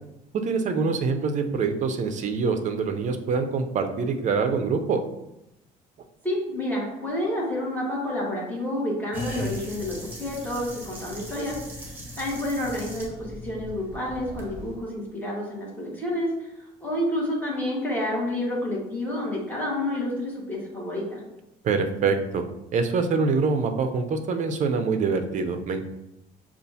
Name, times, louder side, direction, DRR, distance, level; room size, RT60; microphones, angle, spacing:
voice 1, 0.3-5.0 21.6-22.4 22.7-25.9, right 4 dB, 45° right, 6 dB, 0.5 m, -25 dB
voice 2, 6.2-11.5 12.2-16.3 16.6-21.2, left 1 dB, 10° left, -5 dB, 1.5 m, -29 dB
garbage disposal, 9.1-14.7, left 1 dB, 10° right, 1.3 m, -38 dB
6.6 x 2.4 x 2.7 m, 0.89 s
cardioid pair, 110°, 17 cm